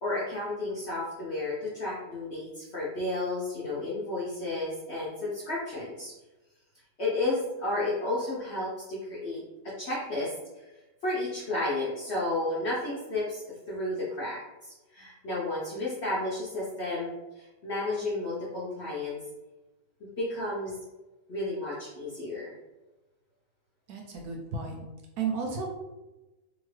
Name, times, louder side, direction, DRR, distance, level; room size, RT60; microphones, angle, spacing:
voice 1, 0.0-6.1 7.0-9.4 9.8-10.3 11.0-19.2 20.2-20.8 21.3-22.5, left 2 dB, 55° left, -7 dB, 0.7 m, -32 dB
voice 2, 23.9-24.8 25.2-25.7, right 5 dB, 70° right, 1 dB, 1.0 m, -33 dB
2.8 x 2.5 x 3.1 m, 1.1 s
omnidirectional pair, 1.8 m